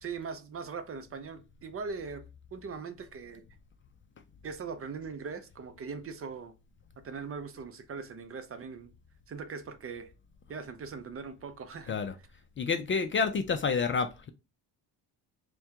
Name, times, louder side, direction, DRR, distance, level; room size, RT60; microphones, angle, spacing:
voice 1, 0.0-2.3 2.5-3.4 4.4-6.5 7.0-8.9 9.3-10.1 10.5-12.0, right 5 dB, 35° right, 0.6 m, -40 dB
voice 2, 12.6-14.3, left 5 dB, 30° left, 0.4 m, -29 dB
4.3 x 2.3 x 3.6 m
cardioid pair, 95°, 40 cm